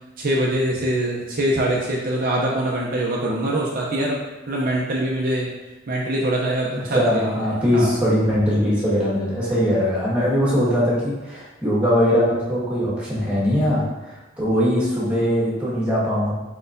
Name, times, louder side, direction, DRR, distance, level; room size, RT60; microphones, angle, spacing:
voice 1, 0.2-4.2 4.5-5.5 5.9-7.5 7.7-8.0, right 1 dB, 50° right, -3 dB, 0.6 m, -23 dB
voice 2, 6.9-16.3, equal, 5° right, -8 dB, 1.5 m, -21 dB
4.6 x 4.2 x 2.6 m, 1.1 s
head